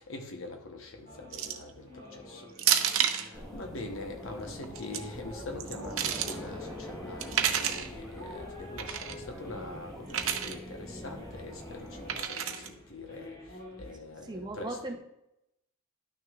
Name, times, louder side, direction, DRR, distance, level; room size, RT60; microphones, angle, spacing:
voice 1, 0.0-14.8, left 2 dB, 70° left, 4 dB, 1.0 m, -44 dB
sound 1, 1.0-13.9, left 1 dB, 50° left, 3.0 m, -48 dB
sound 2, 1.3-1.7 2.6-3.3 4.6-5.0 5.6-6.4 7.2-7.9 8.8-9.2 10.1-10.6 12.1-12.7, right 9 dB, 75° right, 0.7 m, -29 dB
sound 3, 3.3-12.2, equal, ahead, 1.3 m, -44 dB
voice 2, 14.3-15.0, right 2 dB, 20° right, 2 dB, 0.8 m, -37 dB
11.5 x 6.3 x 2.4 m, 0.86 s
head